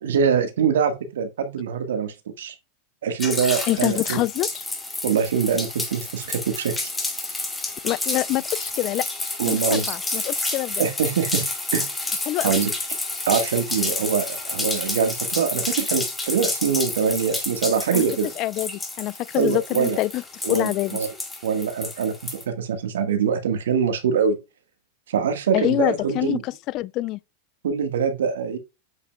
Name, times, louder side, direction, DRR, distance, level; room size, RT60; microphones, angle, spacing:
voice 1, 0.0-2.5 3.0-4.2 5.0-6.9 9.4-9.9 10.8-11.5 11.7-11.9 12.4-12.7 13.3-18.3 19.3-20.0 20.4-21.1 21.4-24.4 25.1-26.4 27.6-28.6, right 6 dB, 85° right, 1.4 m, -24 dB
sound 1, 3.2-22.4, left 2 dB, 10° left, 2.2 m, -30 dB
voice 2, 3.7-4.5 7.8-9.1 9.5-10.8 12.3-12.5 17.9-18.0 18.4-20.2 20.5-21.0 25.5-27.2, left 17 dB, 45° left, 0.4 m, -25 dB
7.9 x 5.7 x 2.2 m
hypercardioid pair, 115°, 0 cm